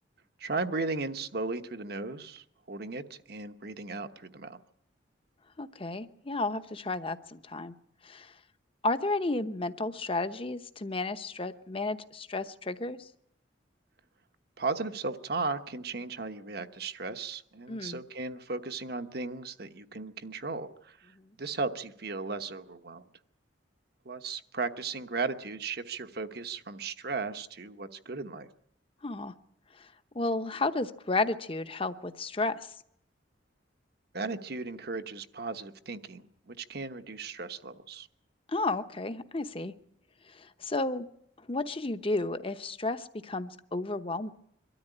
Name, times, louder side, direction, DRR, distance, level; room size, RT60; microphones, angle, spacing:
voice 1, 0.4-4.6 14.6-23.0 24.0-28.5 34.1-38.1, right 3 dB, 55° right, 8 dB, 1.1 m, -36 dB
voice 2, 5.6-7.7 8.0-8.3 8.8-13.1 17.7-18.0 29.0-29.3 29.8-29.9 30.1-32.7 38.5-39.7 40.3-41.1 41.5-44.3, left 2 dB, 30° left, 10 dB, 0.9 m, -32 dB
23.5 x 13.0 x 10.0 m, 0.75 s
head